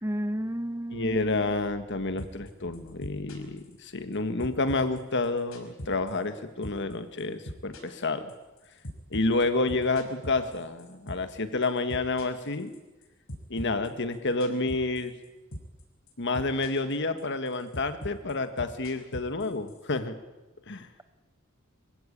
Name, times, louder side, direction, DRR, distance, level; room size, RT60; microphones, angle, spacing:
voice 1, 0.0-1.2, equal, 15° right, 12 dB, 1.0 m, -31 dB
voice 2, 0.9-8.3 9.1-12.7 13.5-15.1 16.2-20.2 20.7-20.9, left 3 dB, 60° left, 9 dB, 1.7 m, -29 dB
sound 1, 2.2-2.5 2.7-4.1 4.4-6.4 6.6-6.9 7.2-11.4 11.6-13.0 13.3-15.3 15.5-15.8 16.1-16.9 17.2-19.8, equal, 85° left, 5.4 m, -40 dB
25.5 x 15.5 x 8.8 m, 1.1 s
head